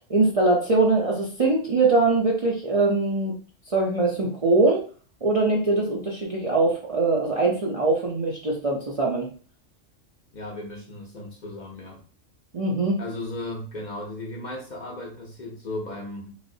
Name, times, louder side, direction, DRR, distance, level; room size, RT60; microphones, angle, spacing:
voice 1, 0.1-3.3 3.7-4.8 5.2-9.3 12.5-13.0, right 3 dB, 45° right, -3 dB, 0.5 m, -22 dB
voice 2, 10.3-12.0 13.0-16.4, left 2 dB, 50° left, -1 dB, 0.6 m, -36 dB
3.2 x 3.0 x 2.6 m, 0.39 s
omnidirectional pair, 1.2 m